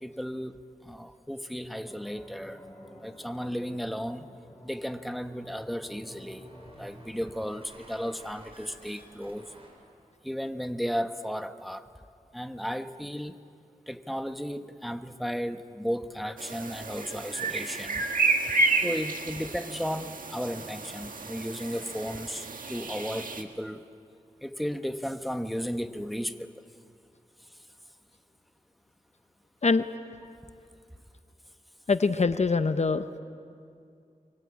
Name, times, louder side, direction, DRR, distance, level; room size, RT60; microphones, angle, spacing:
voice 1, 0.0-2.6 3.0-4.3 4.6-6.4 6.8-9.5 10.2-11.9 12.3-13.4 13.9-18.1 18.8-23.9 24.4-26.5, equal, ahead, 8 dB, 1.2 m, -34 dB
sound 1, 1.8-8.6, left 1 dB, 15° left, 5.8 m, -51 dB
sound 2, 6.0-9.7, right 1 dB, 40° right, 7.3 m, -54 dB
sound 3, 16.4-23.4, right 3 dB, 80° right, 1.7 m, -31 dB
voice 2, 31.9-33.1, left 4 dB, 55° left, 10 dB, 0.9 m, -23 dB
25.0 x 23.5 x 8.6 m, 2.4 s
wide cardioid pair, 55°, 14 cm